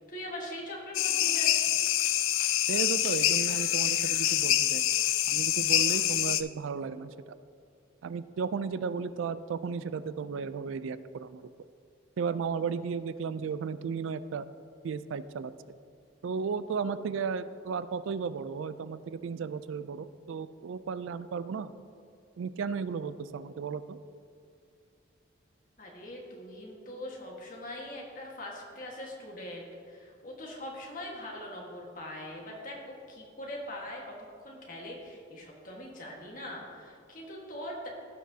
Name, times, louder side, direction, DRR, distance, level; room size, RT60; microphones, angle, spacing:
voice 1, 0.1-2.0 25.8-34.0 34.4-37.9, left 1 dB, 40° left, -2 dB, 1.5 m, -42 dB
sound 1, 0.9-6.4, left 12 dB, 85° left, 0.4 m, -26 dB
voice 2, 2.7-4.9 5.3-7.1 8.0-11.5 12.2-14.4 14.8-15.5 16.2-21.7 22.4-24.0, right 5 dB, 80° right, 14 dB, 0.3 m, -34 dB
16.0 x 6.1 x 2.8 m, 2.3 s
head